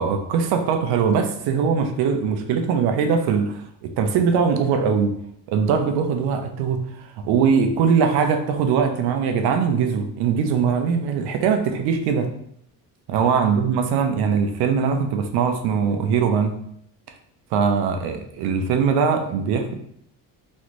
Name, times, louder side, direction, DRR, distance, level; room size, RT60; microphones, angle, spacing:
voice 1, 0.0-5.1 5.5-12.3 13.1-16.6 17.5-19.7, right 6 dB, 90° right, 6 dB, 0.6 m, -21 dB
3.1 x 2.5 x 3.0 m, 0.69 s
cardioid pair, 165°, 38 cm